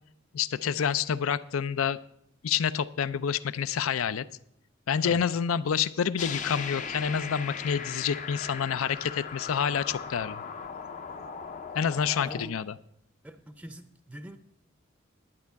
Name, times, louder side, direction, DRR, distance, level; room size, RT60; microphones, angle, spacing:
voice 1, 0.3-2.0 2.4-4.2 4.9-10.4 11.7-12.8, left 7 dB, 85° left, 16 dB, 0.5 m, -28 dB
sound 1, 6.2-12.4, left 6 dB, 40° left, 0.6 m, -38 dB
voice 2, 12.2-12.6 13.2-14.4, right 1 dB, 5° right, 9 dB, 0.5 m, -44 dB
11.0 x 9.7 x 4.6 m, 0.70 s
head